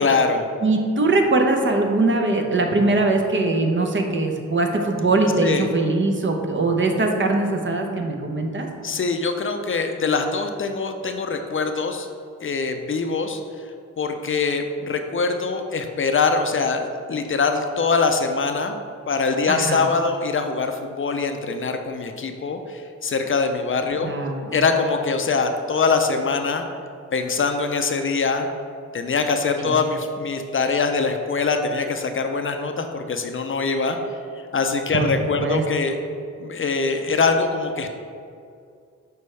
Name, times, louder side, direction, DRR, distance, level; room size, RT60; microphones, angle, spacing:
voice 1, 0.0-0.4 5.4-5.7 8.8-12.1 12.4-13.4 14.0-18.7 19.1-24.1 24.5-26.7 27.1-28.5 28.9-34.0 34.5-36.0 36.4-37.9, left 4 dB, 45° left, 6 dB, 0.5 m, -23 dB
voice 2, 0.6-8.7 19.5-19.8 24.0-24.6 29.6-29.7 34.9-35.1 35.4-35.6, right 2 dB, 40° right, 3 dB, 0.8 m, -21 dB
6.8 x 4.4 x 3.3 m, 2.3 s
cardioid pair, 65°, 29 cm